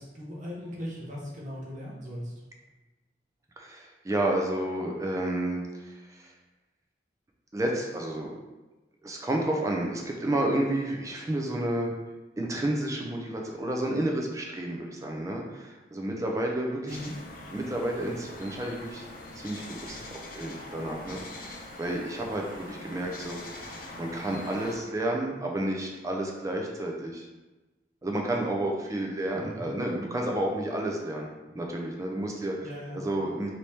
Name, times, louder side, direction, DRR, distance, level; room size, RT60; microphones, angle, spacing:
voice 1, 0.0-2.3 16.9-17.1 29.5-29.7 32.6-33.0, equal, 45° right, -4 dB, 0.7 m, -38 dB
voice 2, 3.6-6.3 7.5-8.3 9.0-11.9 12.4-17.0 17.5-19.0 19.4-20.0 20.3-27.3 28.0-32.5 32.9-33.5, right 1 dB, 20° right, 0 dB, 0.4 m, -31 dB
sound 1, 16.9-24.8, left 2 dB, 50° left, 0.5 m, -43 dB
3.0 x 2.8 x 3.3 m, 1.1 s
head